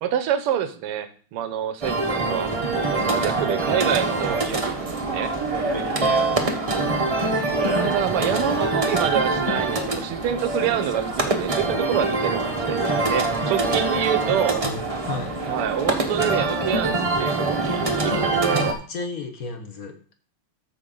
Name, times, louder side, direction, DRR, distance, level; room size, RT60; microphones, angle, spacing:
voice 1, 0.0-2.6 2.8-5.3 7.8-12.8 13.1-14.6 15.5-18.7, right 10 dB, 90° right, 11 dB, 1.8 m, -27 dB
sound 1, 1.8-18.7, right 2 dB, 35° right, 0.5 m, -24 dB
voice 2, 5.9-6.5 14.2-15.4 17.9-20.0, left 4 dB, 45° left, 5 dB, 1.5 m, -35 dB
13.5 x 4.6 x 3.8 m, 0.43 s
omnidirectional pair, 2.4 m